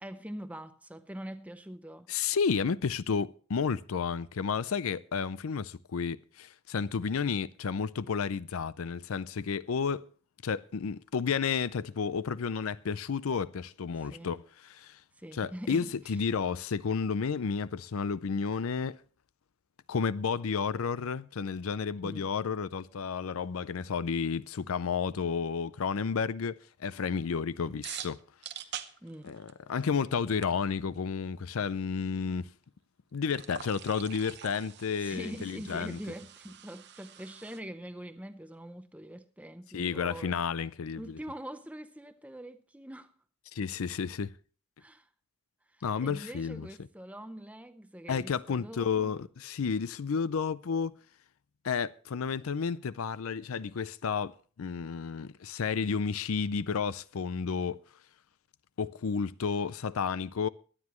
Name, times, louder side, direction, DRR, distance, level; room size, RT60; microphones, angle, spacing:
voice 1, 0.0-2.1 14.0-14.3 15.2-16.2 22.0-22.3 27.6-27.9 29.0-29.4 29.9-30.1 34.9-40.3 40.9-43.1 44.8-45.1 45.7-49.2, right 1 dB, 5° right, 0.6 m, -44 dB
voice 2, 2.1-10.1 10.4-15.0 15.3-19.0 19.9-28.2 29.2-32.5 33.1-36.0 39.7-41.2 43.5-44.3 45.8-46.7 48.1-50.9 51.6-57.8 58.8-60.5, left 6 dB, 75° left, 0.5 m, -31 dB
sound 1, 27.8-29.8 30.1-30.2 30.4-30.5 33.3-37.6, right 10 dB, 50° right, 0.8 m, -45 dB
22.5 x 9.6 x 3.1 m
head